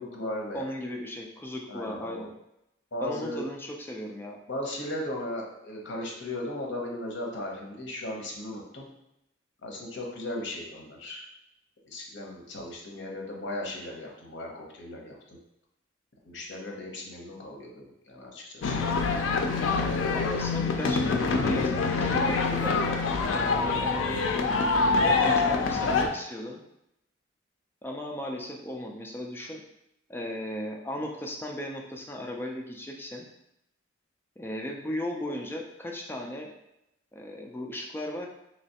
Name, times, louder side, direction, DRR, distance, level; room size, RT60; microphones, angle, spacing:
voice 1, 0.0-0.6 1.7-2.3 2.9-3.5 4.5-8.9 9.6-11.2 11.8-15.4 16.2-18.8, left 1 dB, 65° left, 0 dB, 0.8 m, -37 dB
voice 2, 0.5-2.3 3.0-4.4 20.1-22.8 23.3-24.2 25.0-26.6 27.8-29.6 30.1-33.3 34.4-36.5 37.1-38.3, left 1 dB, 10° left, 1 dB, 0.3 m, -36 dB
sound 1, 18.6-26.1, left 4 dB, 85° left, 0.4 m, -25 dB
3.2 x 3.0 x 2.8 m, 0.84 s
head